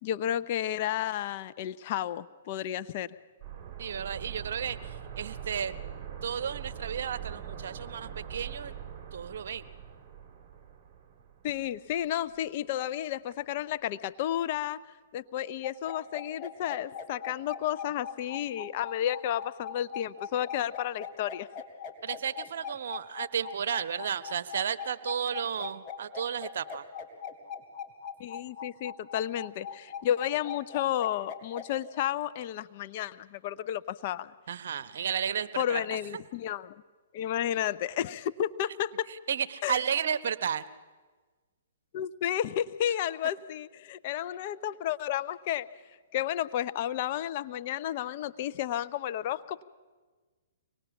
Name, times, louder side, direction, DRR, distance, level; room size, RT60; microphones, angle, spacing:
voice 1, 0.0-3.1 11.4-14.8 15.1-21.5 28.2-34.3 35.6-36.7 37.1-39.1 39.6-39.8 41.9-45.7 46.1-49.6, left 11 dB, 45° left, 12 dB, 0.7 m, -32 dB
sound 1, 3.4-12.1 12.4-12.5, right 9 dB, 30° right, 2.9 m, -43 dB
voice 2, 3.8-5.8 6.2-8.7 9.1-9.6 22.0-26.8 34.5-36.2 39.1-40.6, right 8 dB, 65° right, 13 dB, 1.0 m, -33 dB
sound 2, 15.6-31.7, left 7 dB, 25° left, 3.0 m, -41 dB
24.5 x 19.5 x 7.1 m, 1.4 s
hypercardioid pair, 130°, 0 cm